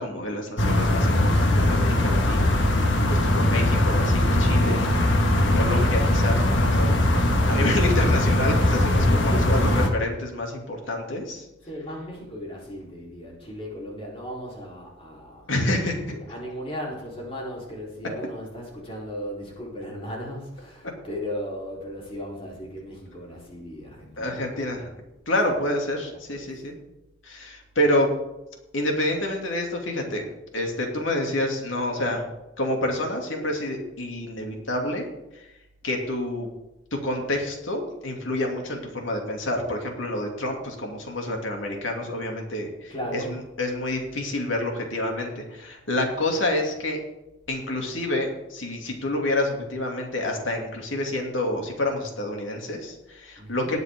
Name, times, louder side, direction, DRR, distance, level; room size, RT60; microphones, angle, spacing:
voice 1, 0.0-4.8 5.5-6.9 7.2-11.5 15.5-16.0 24.2-24.9 25.3-26.7 27.2-28.1 28.7-30.2 30.5-32.2 32.6-35.1 35.3-35.5 35.8-36.5 36.9-47.0 47.5-53.8, left 1 dB, 85° left, 2 dB, 2.7 m, -28 dB
sound 1, 0.6-9.9, left 1 dB, 70° left, 1.7 m, -20 dB
voice 2, 9.2-9.8 11.6-15.6 15.9-24.8 25.4-26.5 42.9-43.4 53.4-53.8, equal, 30° left, -3 dB, 3.9 m, -37 dB
19.0 x 8.1 x 3.7 m, 0.95 s
head